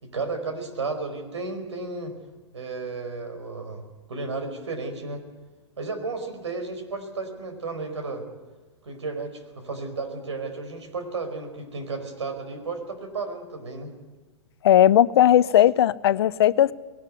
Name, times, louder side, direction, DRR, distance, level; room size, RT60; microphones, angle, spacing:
voice 1, 0.0-2.1 2.5-3.8 4.1-5.2 5.8-8.2 8.8-13.9, right 3 dB, 75° right, 4.8 m, -33 dB
voice 2, 14.6-16.7, left 11 dB, 60° left, 0.6 m, -17 dB
20.0 x 18.5 x 9.6 m
figure-of-eight pair, 105°, 15 cm